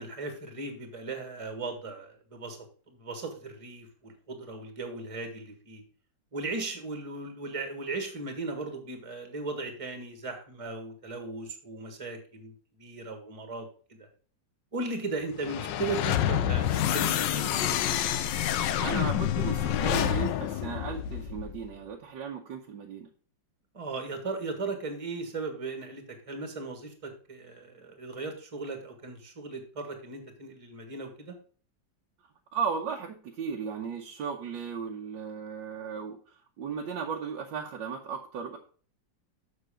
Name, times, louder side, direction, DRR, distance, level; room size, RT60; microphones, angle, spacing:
voice 1, 0.0-2.6 2.9-5.8 6.3-12.5 12.8-14.1 14.7-17.5 23.7-31.4, right 3 dB, 20° right, 5 dB, 1.5 m, -37 dB
sound 1, 15.4-21.7, left 10 dB, 75° left, 1.3 m, -28 dB
voice 2, 18.8-23.1 32.5-38.6, right 6 dB, 75° right, 1 dB, 1.6 m, -35 dB
6.9 x 6.6 x 5.0 m, 0.42 s
omnidirectional pair, 2.0 m